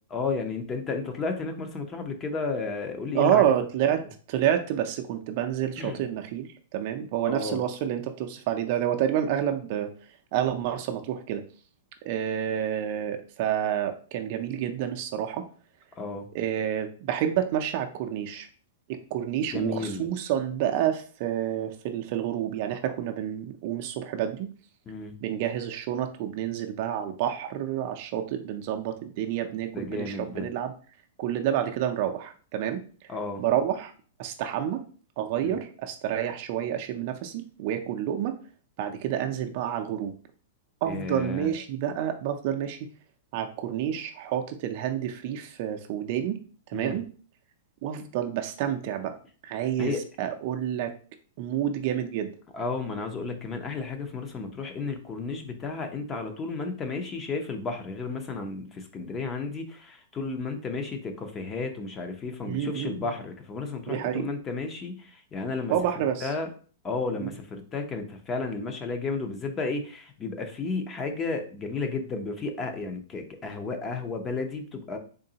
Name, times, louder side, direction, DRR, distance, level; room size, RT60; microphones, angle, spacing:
voice 1, 0.1-3.4 5.8-6.0 7.3-7.6 16.0-16.3 19.5-20.1 24.9-25.1 29.7-30.5 33.1-33.4 35.4-35.5 40.8-41.5 46.7-47.0 49.8-50.0 52.5-65.7 66.2-66.5 66.8-75.0, left 4 dB, 20° left, 5 dB, 0.6 m, -33 dB
voice 2, 3.1-4.0 4.3-9.9 10.3-11.4 12.0-15.5 16.3-18.5 18.9-24.5 25.2-30.7 31.2-32.8 33.4-33.9 34.2-34.8 35.2-38.4 38.8-40.1 40.8-42.9 43.3-46.4 46.7-47.1 47.8-49.1 49.4-50.9 51.4-52.3 62.4-63.1 63.9-64.3 65.7-66.3 67.2-67.3, right 10 dB, 45° right, 5 dB, 0.4 m, -29 dB
3.7 x 3.3 x 2.8 m, 0.40 s
hypercardioid pair, 155°, 0 cm